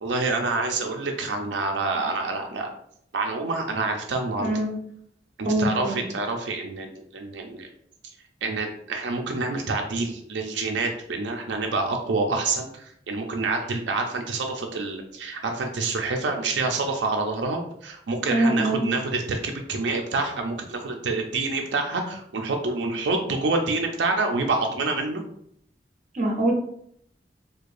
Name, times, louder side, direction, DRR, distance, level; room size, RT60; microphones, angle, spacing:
voice 1, 0.0-2.7 3.1-4.5 5.4-7.7 8.4-25.2, right 3 dB, 90° right, 3 dB, 0.5 m, -27 dB
voice 2, 4.4-4.7 5.4-6.0 18.3-18.8 26.1-26.5, right 1 dB, 45° right, 1 dB, 0.8 m, -23 dB
4.7 x 2.2 x 2.5 m, 0.70 s
head